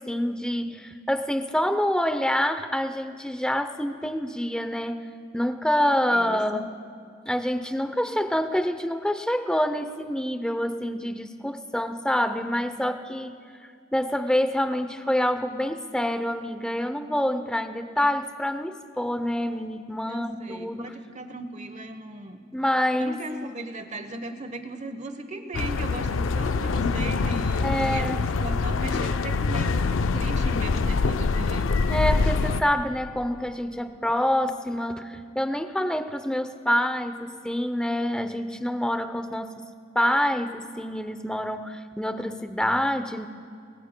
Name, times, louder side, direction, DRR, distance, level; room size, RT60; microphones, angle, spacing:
voice 1, 0.0-5.1 5.3-6.8 7.3-13.4 13.9-20.9 22.5-23.2 27.6-28.2 31.9-39.6 39.9-43.3, equal, 5° left, 9 dB, 0.6 m, -26 dB
voice 2, 6.1-6.6 20.0-22.4 23.0-31.7, right 2 dB, 35° right, 8 dB, 1.0 m, -37 dB
sound 1, 25.5-32.6, left 4 dB, 80° left, 0.5 m, -25 dB
27.5 x 21.0 x 2.2 m, 2.3 s
head